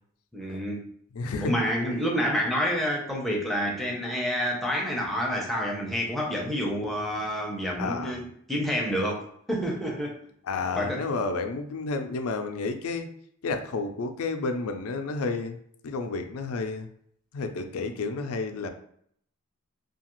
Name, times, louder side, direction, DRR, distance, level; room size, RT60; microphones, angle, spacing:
voice 1, 0.3-0.9 1.4-8.2 8.5-10.2 10.8-11.0, equal, ahead, 0.5 m, -28 dB
voice 2, 1.1-1.6 1.9-2.0 7.8-8.2 10.5-13.1 13.4-15.6 15.8-16.9 17.3-18.7, left 3 dB, 75° left, 0.4 m, -31 dB
2.8 x 2.3 x 3.0 m
head